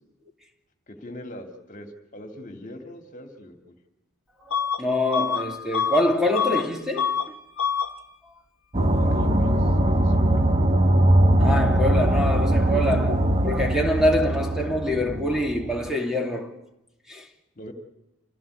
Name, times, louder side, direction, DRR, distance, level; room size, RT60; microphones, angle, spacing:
voice 1, 0.9-3.7 8.9-10.5 17.6-17.7, left 1 dB, 40° left, 2.7 m, -41 dB
voice 2, 4.4-7.1 11.4-16.6 17.1-17.3, left 1 dB, 5° right, 2.6 m, -25 dB
Bus / Alarm, 4.5-4.8 5.1-6.7 6.9-7.3 7.6-7.9, left 7 dB, 75° left, 1.5 m, -26 dB
sound 1, 8.7-15.9, right 1 dB, 30° right, 1.5 m, -21 dB
27.5 x 16.0 x 8.4 m
head